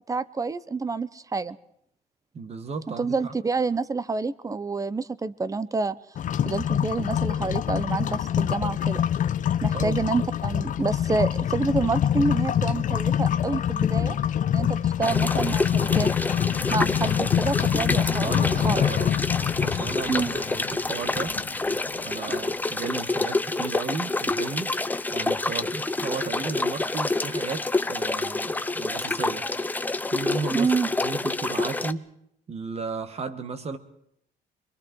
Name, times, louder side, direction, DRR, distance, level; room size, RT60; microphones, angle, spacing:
voice 1, 0.1-1.6 3.0-6.0 6.4-9.0 9.6-14.2 14.5-16.1 16.7-18.8 20.1-20.3 30.5-30.9, right 4 dB, 20° right, 17 dB, 0.9 m, -28 dB
voice 2, 2.3-3.3 9.7-10.3 18.0-19.1 19.6-21.4 22.0-24.8 25.1-29.5 30.1-30.7 31.0-32.1 32.5-33.8, right 4 dB, 40° right, 10 dB, 2.0 m, -34 dB
sound 1, 6.2-22.1, left 9 dB, 50° left, 0.8 m, -25 dB
sound 2, 15.0-31.9, left 2 dB, 10° left, 0.7 m, -28 dB
26.0 x 22.5 x 4.7 m, 0.73 s
cardioid pair, 110°, 17 cm